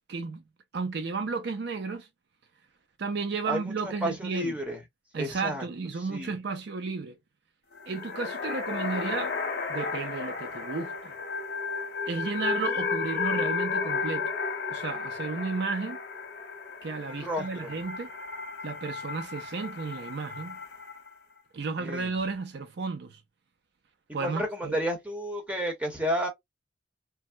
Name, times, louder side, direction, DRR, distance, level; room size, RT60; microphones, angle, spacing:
voice 1, 0.1-0.4 0.7-2.1 3.0-4.5 5.1-7.2 7.9-9.3 9.7-11.1 12.1-14.3 14.7-16.0 16.8-18.1 18.6-20.6 21.5-23.2 24.1-24.8, right 4 dB, 60° right, 0.4 m, -33 dB
voice 2, 3.5-4.8 5.1-5.6 6.0-6.3 17.1-17.7 21.8-22.1 24.2-26.3, equal, 5° right, 1.0 m, -32 dB
sound 1, 7.8-21.1, left 5 dB, 55° left, 0.9 m, -33 dB
3.3 x 2.1 x 2.5 m
head